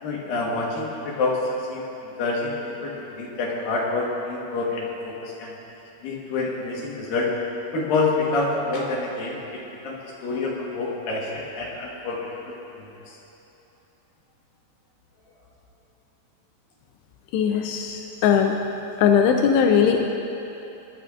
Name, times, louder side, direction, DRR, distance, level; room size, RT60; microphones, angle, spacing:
voice 1, 0.0-1.4 1.7-5.5 6.0-7.3 7.7-12.2 12.5-13.2, left 3 dB, 65° left, -3 dB, 2.7 m, -27 dB
voice 2, 17.3-18.6 19.0-20.1, left 7 dB, 85° left, 3 dB, 2.8 m, -19 dB
23.0 x 11.0 x 2.4 m, 3.0 s
omnidirectional pair, 4.9 m